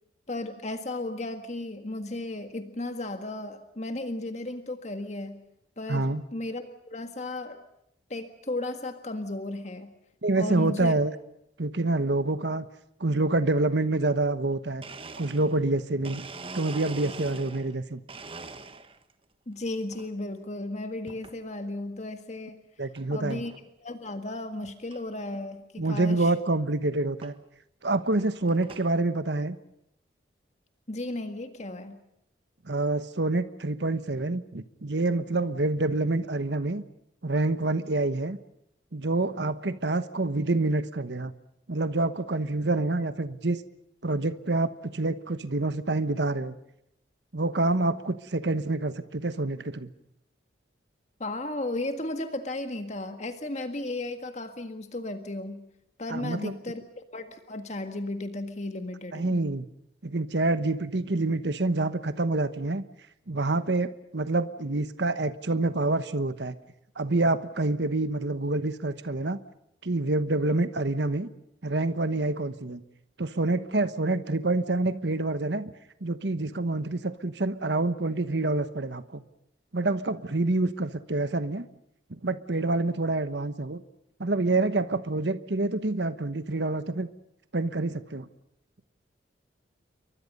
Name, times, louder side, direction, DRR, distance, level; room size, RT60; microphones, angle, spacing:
voice 1, 0.3-5.4 5.8-7.6 8.1-9.9 10.4-11.0 19.5-22.6 23.1-23.5 23.8-26.3 30.9-32.0 51.2-55.6 56.0-59.4, left 2 dB, 40° left, 7 dB, 1.7 m, -35 dB
voice 2, 5.9-6.2 10.2-11.1 11.6-12.7 13.0-14.8 15.2-16.2 16.5-18.0 22.8-23.4 25.8-27.3 27.8-29.6 32.6-36.8 37.2-38.4 38.9-41.3 41.7-43.6 44.0-46.5 47.3-49.9 56.1-56.5 59.1-59.6 60.0-62.8 63.3-66.5 67.0-69.4 69.8-71.3 71.6-72.8 73.2-75.7 76.0-79.2 79.7-81.7 82.1-83.8 84.2-87.1 87.5-88.3, right 2 dB, 70° right, 12 dB, 1.1 m, -27 dB
Domestic sounds home sounds, 14.8-17.8 18.1-19.1 19.6-20.1 21.1-21.4 22.0-22.1 23.0-23.1 23.3-23.6 24.1-24.2 24.4-24.5 24.9-25.0 26.3-26.4 27.2-27.4 28.0-28.9, right 3 dB, 30° right, 1.4 m, -43 dB
29.5 x 24.0 x 5.4 m, 0.80 s
head